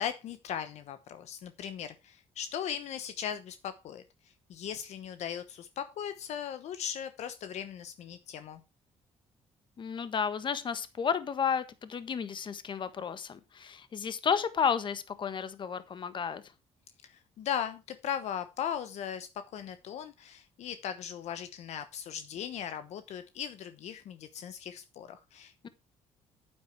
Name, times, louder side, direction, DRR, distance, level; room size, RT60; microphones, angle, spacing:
voice 1, 0.0-4.0 4.5-8.6 17.0-25.7, left 9 dB, 70° left, 1.1 m, -38 dB
voice 2, 9.8-16.4 25.6-25.7, left 7 dB, 40° left, 1.4 m, -32 dB
9.4 x 8.8 x 4.7 m
cardioid pair, 110°, 12 cm